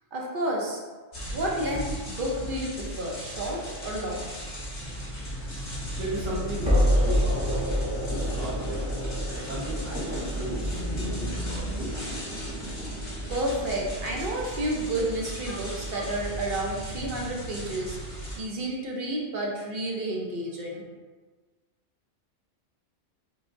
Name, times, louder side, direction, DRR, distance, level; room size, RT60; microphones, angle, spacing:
voice 1, 0.1-0.8 1.3-4.2 13.3-20.8, right 1 dB, 50° right, -2 dB, 0.8 m, -31 dB
sound 1, 1.1-18.4, right 1 dB, 65° left, 1.8 m, -35 dB
sound 2, 4.8-15.8, equal, 10° right, 0.5 m, -30 dB
voice 2, 5.9-7.6 8.1-8.8 9.4-11.9, right 1 dB, 90° right, -13 dB, 1.8 m, -35 dB
4.7 x 3.4 x 2.6 m, 1.3 s
omnidirectional pair, 1.2 m